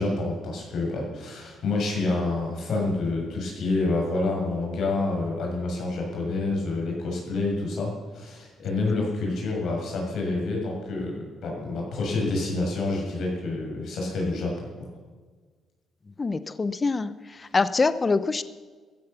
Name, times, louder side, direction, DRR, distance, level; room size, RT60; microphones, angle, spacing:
voice 1, 0.0-14.5 14.8-14.9, left 2 dB, 70° left, -1 dB, 6.9 m, -28 dB
voice 2, 16.2-17.1 17.4-18.4, left 4 dB, 30° left, 14 dB, 0.8 m, -24 dB
15.0 x 13.5 x 7.0 m, 1.4 s
cardioid pair, 90°, 0 cm